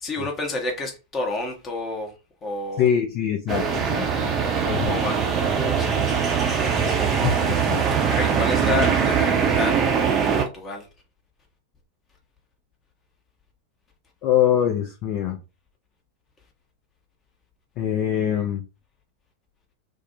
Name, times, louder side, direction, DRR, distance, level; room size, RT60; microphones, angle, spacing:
voice 1, 0.0-2.1 2.4-2.9 4.7-6.5 8.1-9.8 10.2-10.9, left 2 dB, 25° left, 0.8 m, -30 dB
voice 2, 2.8-4.3 4.6-4.9 7.2-7.8 14.2-15.4 17.8-18.6, left 9 dB, 40° left, 0.4 m, -23 dB
sound 1, 3.5-10.5, right 6 dB, 25° right, 0.5 m, -22 dB
2.5 x 2.0 x 2.6 m
figure-of-eight pair, 90°, 0 cm